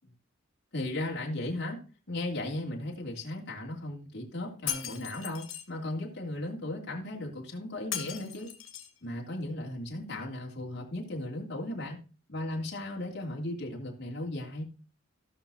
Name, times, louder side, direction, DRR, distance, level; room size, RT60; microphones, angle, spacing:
voice 1, 0.7-1.8 2.1-8.5 9.0-12.0 12.3-14.6, left 1 dB, 55° left, -1 dB, 3.0 m, -36 dB
Shatter, 4.7-5.7 7.9-9.0, left 10 dB, 85° left, 2.3 m, -37 dB
16.5 x 6.5 x 2.8 m, 0.35 s
head